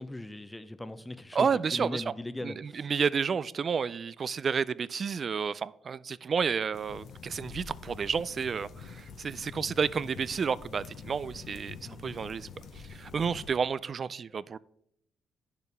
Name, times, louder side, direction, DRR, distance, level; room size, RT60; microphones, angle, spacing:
voice 1, 0.0-2.9 11.8-12.1, left 1 dB, 15° left, 0.7 m, -39 dB
voice 2, 1.3-2.0 2.4-12.5 12.7-14.6, right 6 dB, 50° right, 0.3 m, -31 dB
sound 1, 6.7-13.5, left 5 dB, 65° left, 0.9 m, -46 dB
9.8 x 6.7 x 3.5 m
supercardioid pair, 60°, 0 cm